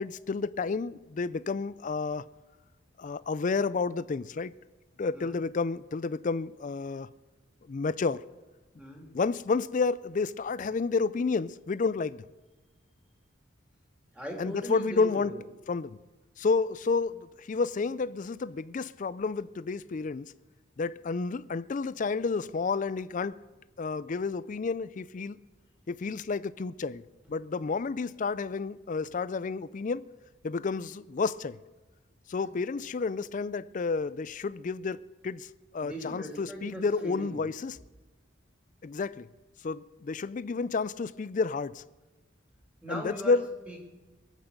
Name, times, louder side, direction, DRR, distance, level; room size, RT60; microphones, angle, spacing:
voice 1, 0.0-2.3 3.0-4.5 5.0-7.1 7.7-8.2 9.1-12.2 14.4-15.3 15.7-16.0 16.4-20.3 20.8-23.4 23.8-25.4 25.9-27.0 27.3-30.1 30.4-31.6 32.3-35.0 35.2-37.8 38.8-39.3 39.6-41.8 42.9-43.5, left 4 dB, 40° left, 0.4 m, -30 dB
voice 2, 8.8-9.1 14.1-15.4 32.4-32.5 35.8-37.4 42.8-43.4 43.7-43.8, equal, 5° right, 3.1 m, -40 dB
21.5 x 8.3 x 6.6 m
head